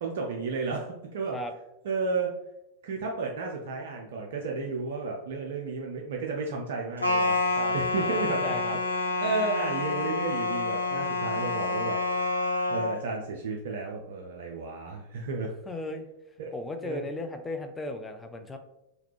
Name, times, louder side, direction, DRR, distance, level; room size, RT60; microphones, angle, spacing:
voice 1, 0.0-1.4 1.8-2.3 2.8-7.4 7.7-8.6 9.2-12.0 12.3-12.4 12.7-15.5 16.4-16.5 16.8-17.0, right 4 dB, 55° right, 0 dB, 0.4 m, -32 dB
sound 1, 7.0-13.0, left 2 dB, 85° left, 0.4 m, -28 dB
voice 2, 7.5-8.8 15.7-16.1 16.5-18.6, left 1 dB, 15° left, 6 dB, 0.3 m, -36 dB
2.9 x 2.4 x 3.2 m, 0.84 s
figure-of-eight pair, 90°, 0 cm